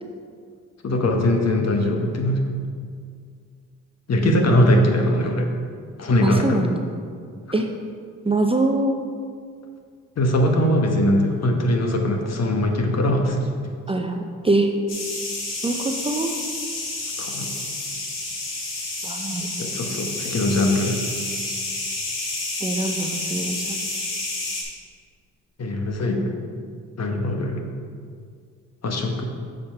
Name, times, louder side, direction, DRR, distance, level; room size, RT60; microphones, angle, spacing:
voice 1, 0.8-2.4 4.1-5.5 6.0-6.6 10.2-13.4 17.2-17.5 19.6-21.0 25.6-26.3 27.0-27.6 28.8-29.2, left 1 dB, 50° left, 3 dB, 1.2 m, -21 dB
voice 2, 4.2-4.8 6.2-6.8 7.5-7.7 8.2-9.0 13.9-14.7 15.6-16.3 19.0-19.5 21.5-21.6 22.6-23.9, right 2 dB, 15° right, 3 dB, 0.6 m, -24 dB
sound 1, 14.9-24.6, left 2 dB, 65° left, 1.9 m, -30 dB
7.0 x 5.2 x 4.5 m, 2.2 s
supercardioid pair, 60°, 34 cm